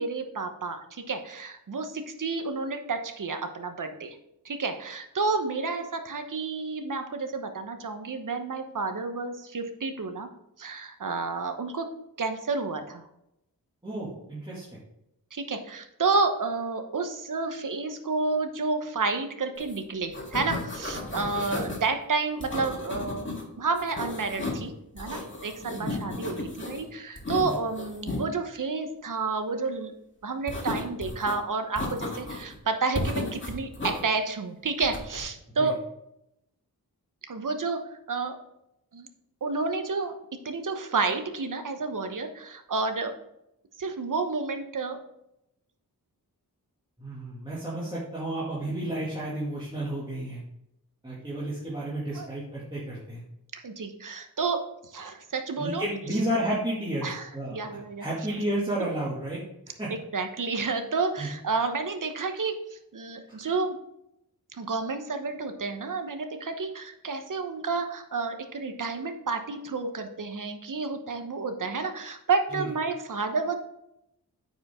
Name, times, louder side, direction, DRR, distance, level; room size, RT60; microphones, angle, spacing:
voice 1, 0.0-4.2 4.4-10.3 10.6-11.9 12.2-13.0 15.3-23.3 23.6-29.9 30.2-35.8 37.3-37.8 38.1-38.4 38.9-39.1 39.4-40.2 40.4-43.1 43.8-45.0 52.1-52.3 53.5-54.6 54.9-55.8 57.0-58.4 58.8-58.9 59.9-63.8 64.5-73.6, right 4 dB, 55° right, 7 dB, 1.0 m, -30 dB
voice 2, 13.8-14.8 21.1-21.3 25.8-26.0 27.4-27.5 35.6-35.7 47.0-50.4 51.0-53.2 55.6-57.6 58.0-59.4 59.8-59.9 61.2-61.3 63.4-63.5 72.5-72.7, right 1 dB, 15° right, -9 dB, 2.3 m, -32 dB
sound 1, 19.6-19.8 20.0-21.8 22.4-23.4 23.7-24.7 25.0-26.8 27.2-28.2 30.5-31.3 31.8-32.5 32.9-34.0 34.8-35.2, left 2 dB, 30° left, 1.9 m, -34 dB
9.1 x 5.3 x 3.7 m, 0.81 s
wide cardioid pair, 95°, 37 cm